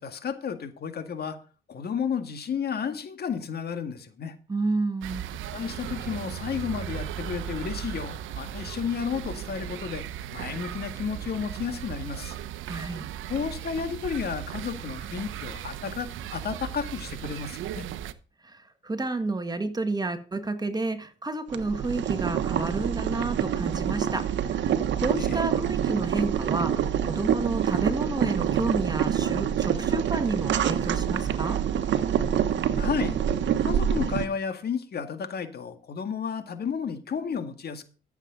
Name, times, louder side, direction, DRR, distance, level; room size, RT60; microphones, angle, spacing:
voice 1, 0.0-1.4 1.7-4.4 5.5-10.1 10.3-12.4 13.3-17.9 25.2-25.4 32.7-33.2 33.6-37.8, left 6 dB, 55° left, 1.9 m, -32 dB
voice 2, 4.5-5.2 12.7-13.1 18.4-24.7 25.0-31.6, right 3 dB, 20° right, 1.8 m, -30 dB
sound 1, 5.0-18.1, right 11 dB, 85° right, 0.9 m, -37 dB
Boiling, 21.5-34.2, right 9 dB, 65° right, 1.3 m, -26 dB
14.0 x 7.3 x 3.9 m
cardioid pair, 90°, 20 cm